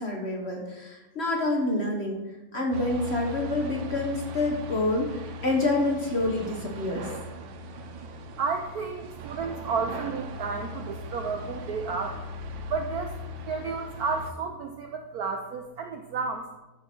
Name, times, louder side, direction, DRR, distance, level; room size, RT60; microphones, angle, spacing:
voice 1, 0.0-2.2 2.5-7.1, left 2 dB, 40° left, 0 dB, 1.1 m, -27 dB
sound 1, 2.7-14.3, left 1 dB, 70° right, 1.5 m, -39 dB
voice 2, 8.4-12.2 12.7-13.2 13.5-16.5, right 5 dB, 90° right, 4 dB, 0.8 m, -32 dB
12.5 x 4.7 x 4.5 m, 1.1 s
omnidirectional pair, 2.4 m